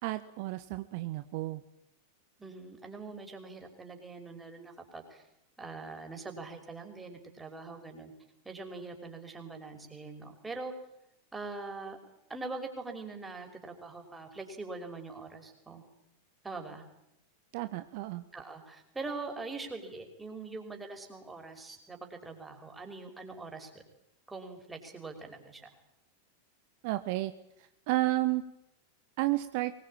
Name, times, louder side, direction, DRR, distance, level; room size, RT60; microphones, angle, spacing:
voice 1, 0.0-1.6 17.5-18.2 26.8-27.3 27.9-28.4 29.2-29.7, right 18 dB, 45° right, 11 dB, 1.2 m, -31 dB
voice 2, 2.4-5.2 5.6-8.1 8.4-10.7 11.3-12.0 12.3-15.8 16.4-16.8 18.3-23.8 24.3-25.7, right 3 dB, 10° right, 4 dB, 5.6 m, -43 dB
23.5 x 22.0 x 8.9 m, 0.81 s
figure-of-eight pair, 90°, 0 cm